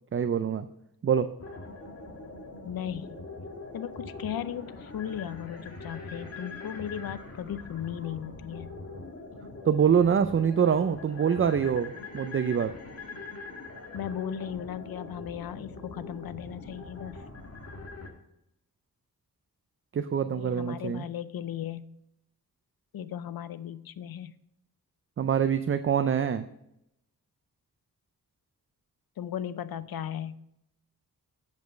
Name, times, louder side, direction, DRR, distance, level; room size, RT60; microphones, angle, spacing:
voice 1, 0.1-0.7 1.0-1.3 9.6-12.7 19.9-21.0 25.2-26.5, right 7 dB, 35° right, 10 dB, 0.4 m, -25 dB
sound 1, 1.4-18.1, left 3 dB, 45° left, 1.6 m, -43 dB
voice 2, 2.6-3.2 3.7-8.8 13.9-17.3 20.2-21.9 22.9-24.3 29.2-30.4, left 9 dB, 75° left, 15 dB, 0.5 m, -36 dB
8.1 x 5.3 x 5.0 m, 0.81 s
wide cardioid pair, 90°, 36 cm